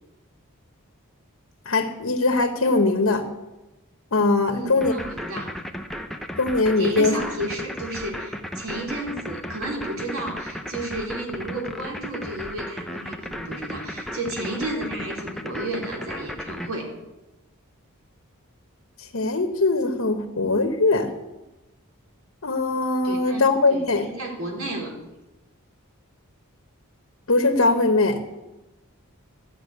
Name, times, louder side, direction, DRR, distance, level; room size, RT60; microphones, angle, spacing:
voice 1, 1.7-3.2 4.1-4.9 6.4-7.1 19.0-21.1 22.4-24.1 27.3-28.2, left 3 dB, 65° left, 6 dB, 1.0 m, -21 dB
voice 2, 4.5-5.5 6.8-16.9 23.0-24.9, right 1 dB, 70° right, 0 dB, 3.3 m, -32 dB
sound 1, 4.8-16.7, equal, ahead, 0.7 m, -34 dB
13.0 x 6.0 x 9.3 m, 1.0 s
head